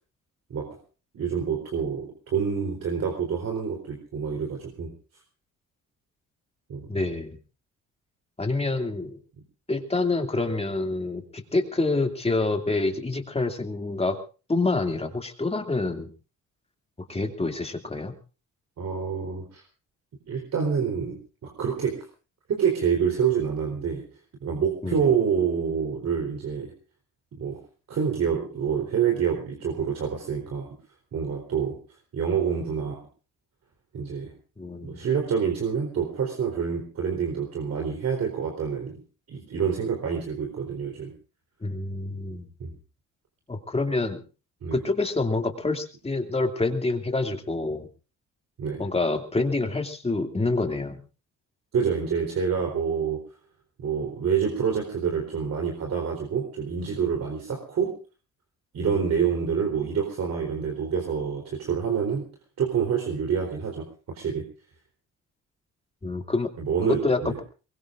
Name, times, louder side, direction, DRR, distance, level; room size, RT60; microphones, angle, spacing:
voice 1, 1.1-4.9 6.7-6.9 18.8-19.6 20.3-21.2 21.4-22.1 22.5-24.1 24.4-26.7 27.4-27.6 27.9-30.7 31.1-31.8 32.1-33.0 33.9-34.3 34.8-39.0 39.3-41.1 42.6-42.7 44.6-44.8 48.6-48.8 51.7-53.2 53.8-57.9 58.7-62.2 62.6-63.9 64.1-64.4 66.6-67.4, right 7 dB, 60° right, 1 dB, 3.9 m, -27 dB
voice 2, 6.9-7.4 8.4-9.2 9.7-14.2 14.5-16.1 17.1-18.1 24.8-25.0 34.6-35.0 41.6-42.5 43.5-44.2 44.7-47.9 48.8-51.0 58.8-59.0 66.0-66.5 66.9-67.3, left 3 dB, 20° left, 4 dB, 2.5 m, -27 dB
23.0 x 21.0 x 2.6 m, 0.35 s
cardioid pair, 90°, 30 cm